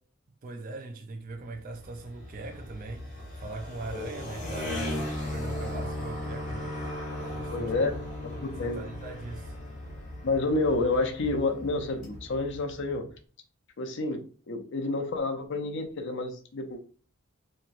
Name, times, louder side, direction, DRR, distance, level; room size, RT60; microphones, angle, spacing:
voice 1, 0.4-6.7 7.2-7.7 8.6-9.6, right 2 dB, 45° right, 0.4 m, -40 dB
sound 1, 1.4-13.0, left 1 dB, 40° left, 1.3 m, -37 dB
voice 2, 7.5-8.0 8.2-8.8 10.2-13.1 13.8-16.8, left 2 dB, 60° left, 0.6 m, -29 dB
3.0 x 2.9 x 2.4 m
head